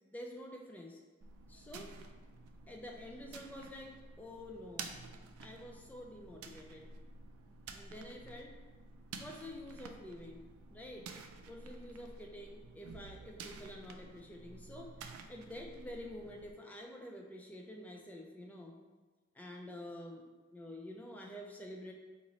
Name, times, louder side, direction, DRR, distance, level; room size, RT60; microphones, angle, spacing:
voice 1, 0.1-1.0 1.5-1.9 2.7-5.0 5.4-6.9 7.7-8.6 9.1-10.4 10.7-11.1 11.4-14.9 15.3-18.8 19.3-20.2 20.5-21.9, left 1 dB, 5° left, 0 dB, 0.3 m, -48 dB
sound 1, 1.2-16.5, right 4 dB, 80° right, 0.3 m, -51 dB
3.9 x 2.5 x 3.0 m, 1.3 s
head